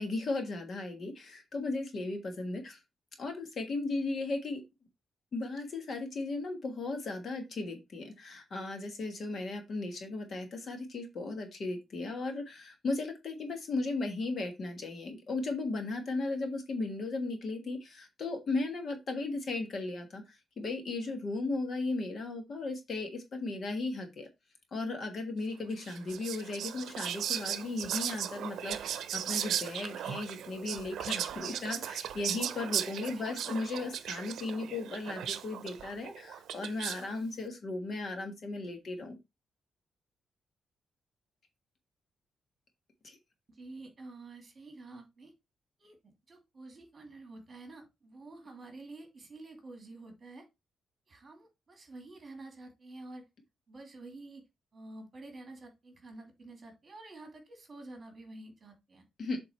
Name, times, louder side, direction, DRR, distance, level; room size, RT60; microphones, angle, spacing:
voice 1, 0.0-2.8 3.2-4.6 5.3-24.3 24.7-39.2 43.0-43.2 59.2-59.4, left 3 dB, 40° left, 5 dB, 1.4 m, -36 dB
Whispering, 25.8-37.1, right 9 dB, 85° right, 0.7 m, -37 dB
voice 2, 33.2-33.6 43.5-45.3 45.8-50.5 51.1-53.2 53.7-54.4 54.7-59.0, right 2 dB, 25° right, 4 dB, 2.4 m, -49 dB
7.6 x 3.7 x 4.3 m, 0.22 s
wide cardioid pair, 175°, 0 cm